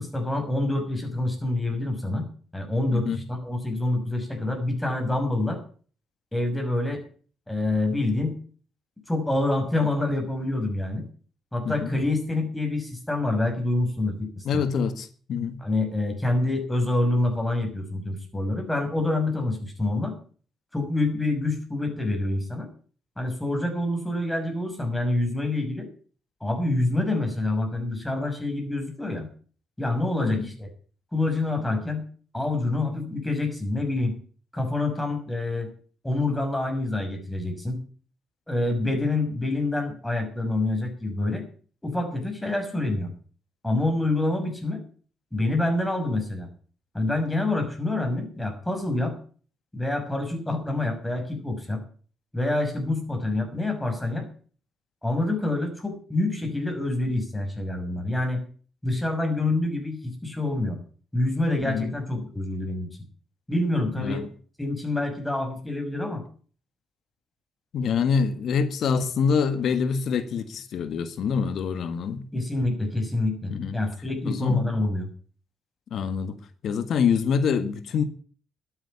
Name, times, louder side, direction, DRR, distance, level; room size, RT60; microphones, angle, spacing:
voice 1, 0.0-2.3 2.5-5.6 6.3-7.0 7.5-8.4 9.1-11.1 11.5-14.6 15.6-20.1 20.7-22.7 23.2-25.9 26.4-29.3 29.8-30.7 31.1-32.1 32.3-34.2 34.5-35.7 36.0-37.8 38.5-41.4 41.8-43.1 43.6-44.8 45.3-46.5 46.9-49.2 49.7-51.8 52.3-54.3 55.0-58.4 58.8-60.8 61.1-62.9 63.5-64.2 64.6-66.2 72.3-75.1, left 2 dB, 10° left, 6.1 m, -27 dB
voice 2, 2.9-3.2 11.7-11.9 14.5-15.6 30.2-30.5 61.6-61.9 64.0-64.3 67.7-72.2 73.5-73.8 74.2-74.7 75.9-78.0, left 6 dB, 65° left, 1.7 m, -25 dB
12.5 x 9.1 x 8.3 m
cardioid pair, 90°, 0 cm